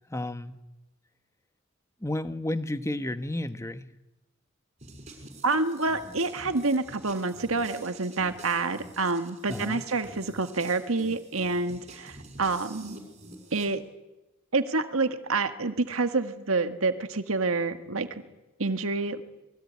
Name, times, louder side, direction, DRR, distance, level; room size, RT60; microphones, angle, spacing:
voice 1, 0.1-0.6 2.0-3.9 9.5-9.8, left 1 dB, 15° left, 10 dB, 1.2 m, -32 dB
sound 1, 4.8-13.7, right 2 dB, 35° right, 6.1 m, -47 dB
voice 2, 5.4-13.0 13.5-13.8 14.5-18.2 18.6-19.2, right 3 dB, 75° right, 8 dB, 1.8 m, -28 dB
26.5 x 22.5 x 9.7 m, 1.0 s
head